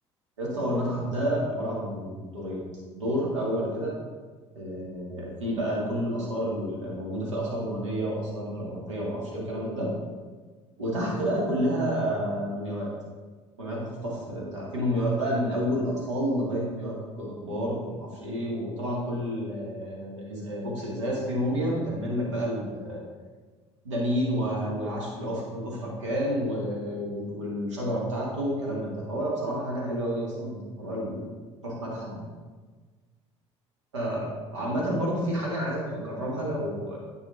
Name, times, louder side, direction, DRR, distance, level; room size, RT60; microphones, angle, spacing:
voice 1, 0.4-3.9 4.6-9.9 10.8-12.9 13.6-23.0 23.8-31.3 31.6-32.2 33.9-37.0, equal, 85° right, -4 dB, 1.9 m, -30 dB
10.0 x 5.5 x 2.6 m, 1.4 s
hypercardioid pair, 60°, 15 cm